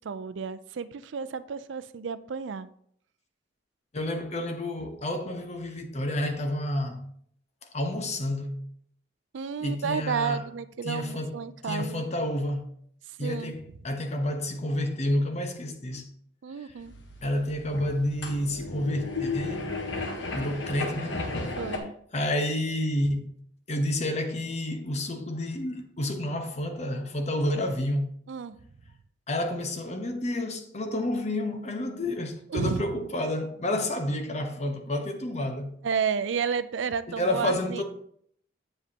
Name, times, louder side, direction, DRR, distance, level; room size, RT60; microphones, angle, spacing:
voice 1, 0.0-2.7 9.3-12.0 13.2-13.5 16.4-16.9 21.6-21.9 28.3-28.6 32.5-32.9 35.8-37.8, right 6 dB, 80° right, 0.4 m, -31 dB
voice 2, 3.9-7.0 7.7-8.6 9.6-10.4 10.8-12.7 13.2-16.0 16.6-16.7 17.2-19.7 20.3-21.2 22.1-23.3 23.7-28.1 29.3-35.7 37.1-37.8, left 1 dB, 35° left, 0.9 m, -30 dB
sound 1, 16.8-21.8, left 3 dB, 75° left, 1.1 m, -34 dB
7.7 x 7.4 x 2.8 m
head